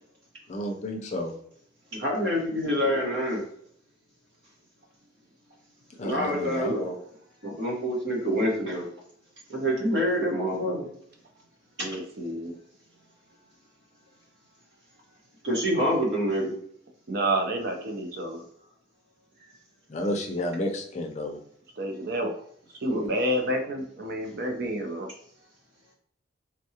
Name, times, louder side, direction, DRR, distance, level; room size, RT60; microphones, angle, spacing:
voice 1, 0.5-1.3 6.0-6.7 19.9-21.4, left 1 dB, 40° left, 3 dB, 0.4 m, -31 dB
voice 2, 2.0-3.4 6.0-6.9 7.4-8.9 9.5-10.9 15.4-16.5 22.9-23.1, equal, 75° right, -2 dB, 1.2 m, -26 dB
voice 3, 11.8-12.6 17.1-18.4 21.8-22.4 22.8-25.1, right 1 dB, 55° right, 3 dB, 0.6 m, -29 dB
3.5 x 2.3 x 2.8 m, 0.66 s
head